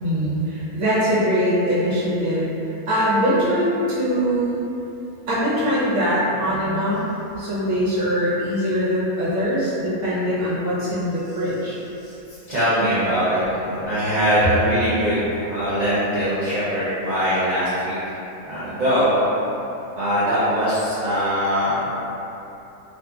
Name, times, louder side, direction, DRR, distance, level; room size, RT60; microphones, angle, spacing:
voice 1, 0.0-2.5 2.9-4.6 5.3-7.1 7.4-11.8, equal, 60° right, -10 dB, 1.0 m, -22 dB
voice 2, 12.5-18.0 18.4-19.2 20.0-21.9, equal, 75° right, -13 dB, 0.4 m, -21 dB
2.7 x 2.5 x 2.3 m, 3.0 s
omnidirectional pair, 1.6 m